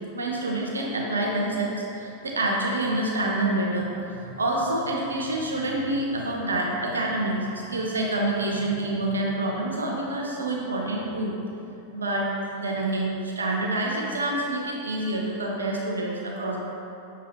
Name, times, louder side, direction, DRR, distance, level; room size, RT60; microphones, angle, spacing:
voice 1, 0.1-11.3 11.9-12.3 12.6-16.6, right 2 dB, 75° right, -2 dB, 0.6 m, -27 dB
6.1 x 2.8 x 3.0 m, 2.8 s
figure-of-eight pair, 90°, 0 cm